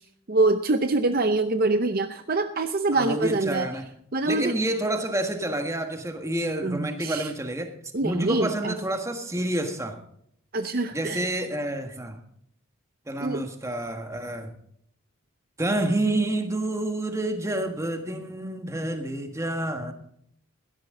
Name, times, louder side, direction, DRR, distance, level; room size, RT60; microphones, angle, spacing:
voice 1, 0.3-3.7 4.1-4.5 6.6-7.3 7.9-8.7 10.5-11.3 13.2-13.5, right 2 dB, 40° right, 9 dB, 0.6 m, -25 dB
voice 2, 3.0-3.9 4.2-7.7 8.0-10.0 10.9-12.2 13.1-14.5 15.6-19.9, right 1 dB, 15° right, 5 dB, 1.5 m, -28 dB
16.5 x 12.5 x 3.8 m, 0.68 s
head